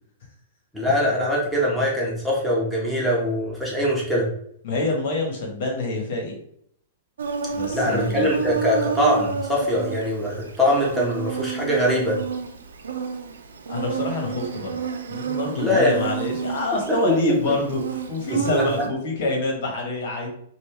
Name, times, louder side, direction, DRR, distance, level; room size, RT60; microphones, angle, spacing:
voice 1, 0.7-4.3 7.7-12.2 15.6-16.0 16.9-17.5 18.3-18.6, equal, ahead, -6 dB, 1.5 m, -22 dB
voice 2, 4.6-6.4 7.5-8.4 13.7-14.8 15.1-20.3, left 2 dB, 60° left, 1 dB, 1.5 m, -26 dB
Insect, 7.2-18.9, right 5 dB, 85° right, 0.7 m, -30 dB
5.2 x 2.7 x 3.5 m, 0.68 s
hypercardioid pair, 130°, 0 cm